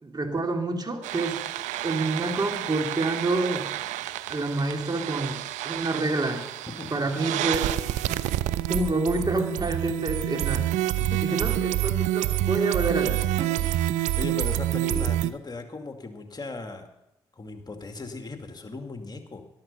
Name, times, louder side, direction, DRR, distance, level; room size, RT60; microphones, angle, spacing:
voice 1, 0.0-3.7 4.3-5.4 5.6-6.4 6.9-7.7 8.7-10.6 11.2-13.5 14.9-15.1, right 2 dB, 35° right, 3 dB, 2.9 m, -28 dB
sound 1, 1.0-15.3, right 14 dB, 80° right, 0.5 m, -28 dB
voice 2, 6.8-7.2 11.0-11.3 13.6-16.9 17.4-19.4, left 3 dB, 35° left, 5 dB, 2.4 m, -38 dB
13.5 x 11.5 x 5.6 m, 0.85 s
hypercardioid pair, 40°, 12 cm